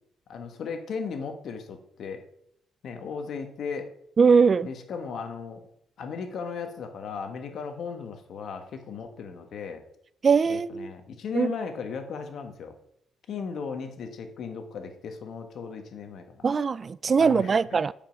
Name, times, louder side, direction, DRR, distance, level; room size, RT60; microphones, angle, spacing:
voice 1, 0.3-2.2 2.8-3.9 4.6-5.6 6.0-9.8 10.5-12.7 13.3-16.5 17.2-17.8, left 6 dB, 65° left, 1.3 m, -36 dB
voice 2, 4.2-4.7 10.2-10.9 11.3-11.5 16.4-17.9, right 5 dB, 40° right, 0.3 m, -21 dB
8.8 x 5.2 x 5.3 m
cardioid pair, 90°, 0 cm